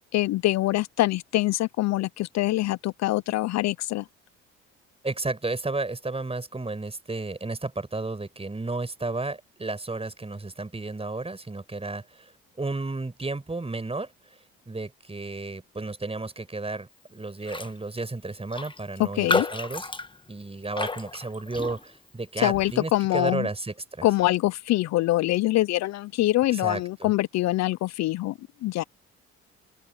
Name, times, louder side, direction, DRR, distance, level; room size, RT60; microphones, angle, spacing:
voice 1, 0.1-4.0 19.0-19.5 22.4-23.5 24.0-28.8, left 16 dB, 65° left, 0.6 m, -24 dB
voice 2, 5.0-12.3 12.6-14.1 14.7-19.9 20.3-24.1 26.5-27.1, right 3 dB, 20° right, 5.8 m, -32 dB
Raindrop, 17.4-17.8 18.0-18.1 18.5-22.1 22.5-22.8, left 3 dB, 15° left, 1.4 m, -31 dB
open air
supercardioid pair, 65°, 30 cm